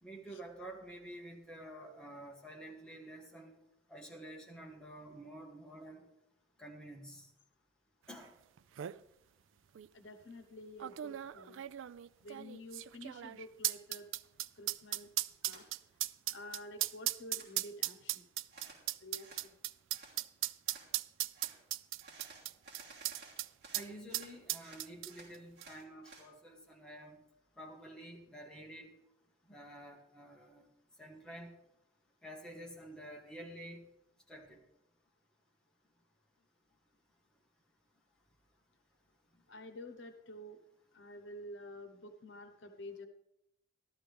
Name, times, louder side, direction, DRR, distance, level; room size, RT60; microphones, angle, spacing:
voice 1, 0.0-3.5 3.9-6.0 6.6-7.3 8.1-8.3 23.7-27.2 27.6-28.9 29.5-30.7 31.0-31.5 32.2-33.8 34.3-34.6, right 1 dB, 5° left, -1 dB, 1.5 m, -49 dB
sound 1, 8.2-8.3 8.6-9.0 9.8-9.9 10.8-23.5 23.7-23.9 24.1-25.4 25.6-25.7, right 15 dB, 90° right, 0.3 m, -37 dB
voice 2, 9.9-11.6 12.2-14.1 14.5-15.1 15.4-15.7 16.3-18.3 19.0-19.6 39.5-40.6 40.9-43.1, left 1 dB, 80° left, 8 dB, 1.0 m, -50 dB
sound 2, 15.4-15.6 16.1-16.8 17.1-17.5 18.5-18.8 19.2-19.5 19.9-20.2 20.6-20.9 21.3-21.6 22.0-24.3 24.6-26.3, right 4 dB, 55° right, 3.1 m, -55 dB
13.0 x 12.5 x 3.5 m, 0.85 s
head